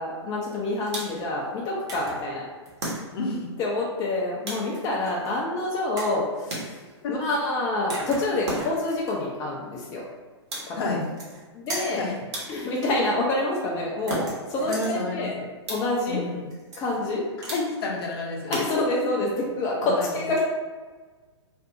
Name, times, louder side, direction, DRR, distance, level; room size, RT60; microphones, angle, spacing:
voice 1, 0.0-2.4 3.6-6.8 7.1-10.0 10.7-11.0 11.5-12.1 12.5-15.3 15.7-16.2 16.8-17.2 18.5-20.4, left 2 dB, 25° left, -3 dB, 0.4 m, -27 dB
sound 1, 0.9-1.4 2.8-3.4 4.4-5.0 6.5-7.1 8.4-9.0 10.5-11.0 12.3-12.9 14.1-14.6 15.6-16.1 17.5-18.0 18.5-19.2, right 1 dB, 65° right, 1.1 m, -35 dB
sound 2, 1.9-2.3 2.6-3.0 4.7-5.3 6.0-6.2 7.5-7.6 7.9-9.1 10.9-11.4 11.7-12.0 14.0-14.9 16.5-17.0 17.3-17.6, right 2 dB, 25° right, 0.7 m, -38 dB
voice 2, 3.1-3.5 7.0-7.2 10.8-11.0 12.0-12.1 14.7-15.5 16.1-16.5 17.5-18.7 19.9-20.1, left 3 dB, 55° left, -2 dB, 0.8 m, -30 dB
2.6 x 2.5 x 2.4 m, 1.4 s
figure-of-eight pair, 115°, 15 cm